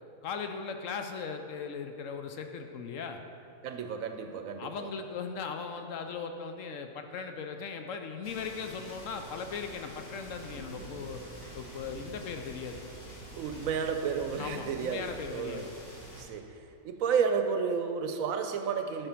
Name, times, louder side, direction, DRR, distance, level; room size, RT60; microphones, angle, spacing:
voice 1, 0.0-3.2 4.6-11.2 11.5-12.8 14.4-15.7, left 5 dB, 70° left, 6 dB, 0.9 m, -38 dB
voice 2, 3.6-4.9 13.3-15.7 16.2-19.1, right 6 dB, 75° right, 6 dB, 1.0 m, -32 dB
sound 1, 8.2-16.2, right 1 dB, 50° left, 2.3 m, -47 dB
9.0 x 5.0 x 5.8 m, 2.6 s
omnidirectional pair, 1.5 m